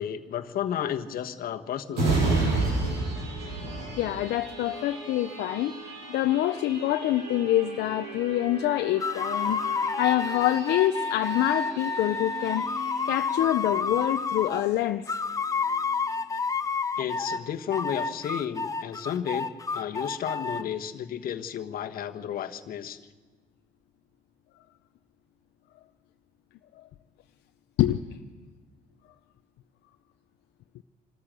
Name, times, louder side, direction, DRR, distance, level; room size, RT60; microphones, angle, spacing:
voice 1, 0.0-2.5 17.0-23.0, left 9 dB, 60° left, 8 dB, 1.3 m, -32 dB
sound 1, 1.9-15.3 15.7-15.8, right 3 dB, 80° right, 7.0 m, -33 dB
voice 2, 4.0-5.7 6.1-12.7 13.0-15.2 26.8-26.9 27.8-28.0, left 14 dB, 75° left, 7 dB, 0.7 m, -26 dB
sound 2, 9.0-14.7 15.1-17.4 17.7-20.6, left 4 dB, 20° left, 0.9 m, -30 dB
25.5 x 13.5 x 7.6 m, 1.4 s
cardioid pair, 110°, 17 cm